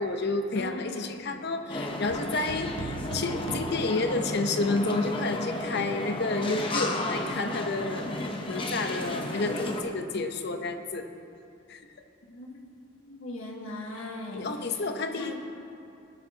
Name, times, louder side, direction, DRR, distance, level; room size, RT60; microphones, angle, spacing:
voice 1, 0.0-8.1 8.4-11.1 11.7-11.8 14.3-15.3, left 3 dB, 55° left, 6 dB, 0.8 m, -30 dB
voice 2, 0.5-1.1 12.3-12.6 12.8-14.9 15.2-15.3, left 1 dB, 85° left, -2 dB, 1.7 m, -40 dB
sound 1, 1.7-9.8, left 1 dB, 25° left, 0.9 m, -33 dB
sound 2, 2.5-4.7, right 5 dB, 65° right, 0.4 m, -41 dB
20.5 x 11.5 x 2.9 m, 2.6 s
head